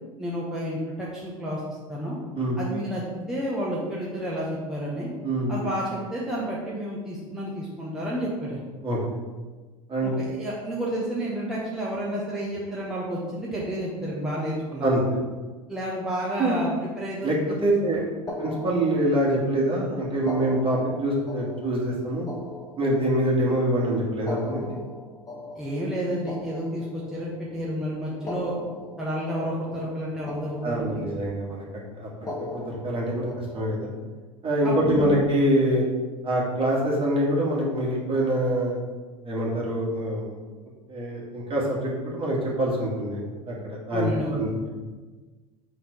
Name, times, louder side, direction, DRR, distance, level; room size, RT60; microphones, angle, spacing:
voice 1, 0.2-1.6 1.9-2.2 2.6-5.1 5.5-8.6 10.0-14.9 15.7-16.7 17.0-17.5 17.9-18.0 25.5-28.6 29.0-31.0 34.6-35.1 43.9-44.4, equal, 5° right, -7 dB, 1.4 m, -30 dB
voice 2, 5.2-5.6 8.8-9.0 9.9-10.1 14.8-15.0 16.4-16.6 17.2-17.4 17.6-18.0 18.4-22.3 22.8-24.8 30.6-31.6 32.0-32.1 32.4-33.3 33.5-33.9 34.4-35.8 36.2-38.8 39.2-40.4 40.9-44.5, right 1 dB, 30° right, -4 dB, 2.0 m, -25 dB
sound 1, 18.3-19.5 20.2-23.5 24.1-27.4 28.1-30.0 30.3-31.3 32.1-34.0, left 2 dB, 20° left, 1.3 m, -39 dB
6.1 x 3.8 x 4.5 m, 1.3 s
hypercardioid pair, 80°, 18 cm